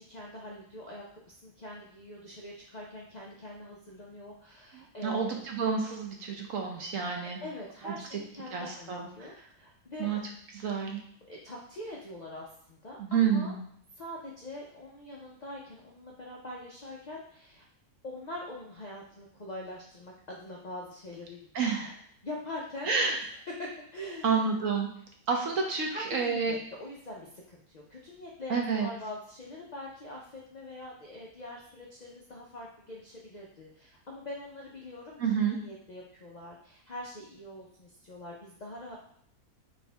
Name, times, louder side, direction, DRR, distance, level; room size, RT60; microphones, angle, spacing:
voice 1, 0.0-5.4 7.4-10.2 11.3-13.6 14.0-17.6 18.0-21.5 22.2-24.5 25.9-35.2 35.4-39.0, left 1 dB, 55° left, -3 dB, 0.4 m, -43 dB
voice 2, 4.7-7.4 7.8-8.2 8.5-9.3 10.0-10.2 10.5-11.0 13.0-13.6 21.5-22.0 22.9-23.2 24.2-24.9 25.3-26.6 28.5-28.9 35.2-35.6, right 6 dB, 65° right, 1 dB, 1.0 m, -29 dB
4.6 x 2.7 x 3.3 m, 0.66 s
omnidirectional pair, 1.6 m